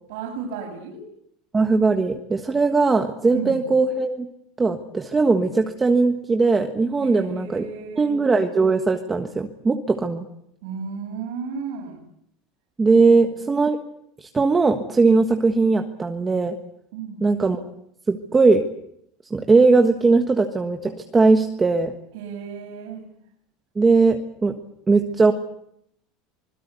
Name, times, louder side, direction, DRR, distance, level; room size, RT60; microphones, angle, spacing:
voice 1, 0.1-1.1 3.3-3.6 7.0-8.1 10.6-12.0 13.0-13.3 16.9-17.2 22.1-23.0, right 6 dB, 75° right, 0 dB, 7.2 m, -33 dB
voice 2, 1.5-4.3 4.6-7.6 8.0-10.3 12.8-13.8 14.2-16.6 17.2-17.6 18.1-18.6 19.3-21.9 23.7-24.5 24.9-25.3, right 3 dB, 15° right, 5 dB, 1.5 m, -19 dB
26.0 x 21.0 x 8.3 m, 0.74 s
cardioid pair, 165°, 0 cm